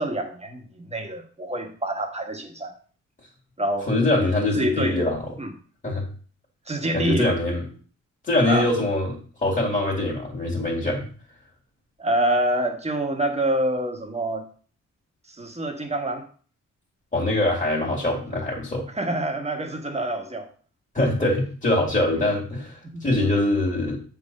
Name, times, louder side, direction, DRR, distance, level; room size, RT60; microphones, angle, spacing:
voice 1, 0.0-2.7 3.6-3.9 4.1-5.0 5.4-5.5 6.7-7.3 8.4-8.7 12.0-14.5 15.3-16.3 18.9-20.5 22.2-22.3 22.9-23.0, right 1 dB, 20° right, 3 dB, 1.3 m, -26 dB
voice 2, 3.9-5.3 5.8-6.1 6.9-7.6 8.2-11.1 17.1-18.9 20.9-24.0, left 2 dB, 25° left, -3 dB, 2.2 m, -23 dB
7.9 x 3.8 x 5.3 m, 0.41 s
wide cardioid pair, 125°, 29 cm